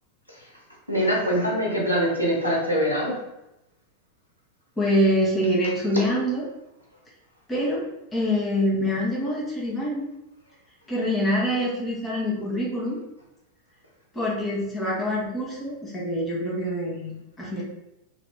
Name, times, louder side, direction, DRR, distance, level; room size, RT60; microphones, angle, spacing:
voice 1, 0.9-3.2, equal, 85° right, -3 dB, 0.8 m, -23 dB
voice 2, 4.8-6.4 7.5-7.8 8.1-10.0 10.9-13.0 14.1-17.6, equal, 15° left, -5 dB, 0.9 m, -25 dB
2.7 x 2.7 x 3.5 m, 0.92 s
figure-of-eight pair, 90°, 0 cm